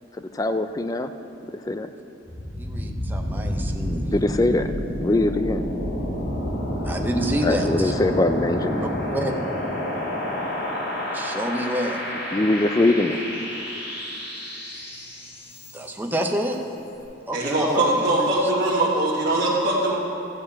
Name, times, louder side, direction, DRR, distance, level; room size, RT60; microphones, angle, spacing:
voice 1, 0.2-1.1 1.7-1.9 4.1-4.7 5.0-5.6 7.4-8.9 12.3-13.2, left 2 dB, 20° left, 9 dB, 0.4 m, -22 dB
sound 1, 2.3-16.1, equal, 80° left, 3.0 m, -29 dB
voice 2, 2.6-4.1 6.8-7.9 8.8-9.3 11.1-12.0 15.7-16.6 17.3-18.5, equal, 10° right, 2 dB, 0.7 m, -28 dB
voice 3, 17.3-19.9, right 2 dB, 45° right, -8 dB, 1.4 m, -21 dB
13.5 x 5.0 x 8.4 m, 2.9 s
head